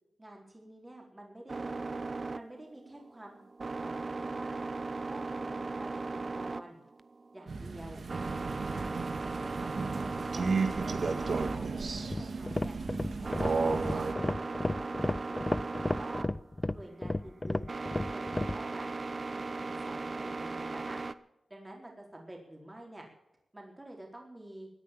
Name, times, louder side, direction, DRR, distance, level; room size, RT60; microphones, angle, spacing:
voice 1, 0.2-1.7 2.3-3.4 3.8-4.7 4.9-6.8 7.3-8.0 8.7-10.9 11.3-12.8 13.2-16.3 16.7-18.9 19.3-21.0 21.5-23.1 23.5-24.7, right 1 dB, 20° right, -1 dB, 4.2 m, -49 dB
sound 1, 1.5-21.1, right 3 dB, 50° right, 0.8 m, -38 dB
Crow, 7.5-14.1, right 4 dB, 65° right, 1.7 m, -34 dB
sound 2, 12.0-18.6, left 2 dB, 20° left, 0.5 m, -33 dB
17.0 x 10.0 x 7.5 m, 0.87 s
cardioid pair, 65°, 0 cm